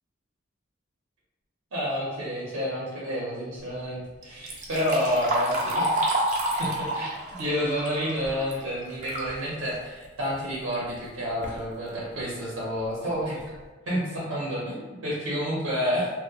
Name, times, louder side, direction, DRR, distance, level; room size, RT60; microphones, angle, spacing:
voice 1, 1.7-6.1 6.6-7.1 7.4-13.4 13.9-16.1, equal, 85° right, -6 dB, 0.6 m, -29 dB
Liquid, 4.2-9.3 9.7-9.8 10.7-10.8 11.2-11.6 12.2-12.3 12.8-12.9 13.3-13.6, right 1 dB, 35° right, 0.4 m, -29 dB
2.8 x 2.0 x 2.3 m, 1.3 s
head